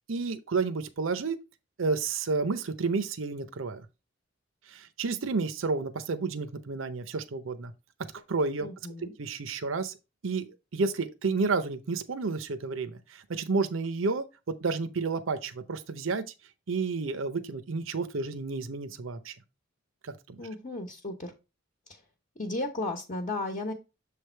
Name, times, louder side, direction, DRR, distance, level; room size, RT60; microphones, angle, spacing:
voice 1, 0.0-1.4 1.8-3.8 4.7-7.7 8.1-8.7 9.0-9.9 10.2-16.2 16.7-19.4 20.0-20.4, right 4 dB, 75° right, 0.7 m, -31 dB
voice 2, 8.6-9.1 20.4-21.3 21.9-22.0 22.4-23.7, left 2 dB, 40° left, 1.0 m, -34 dB
7.0 x 3.4 x 4.4 m
head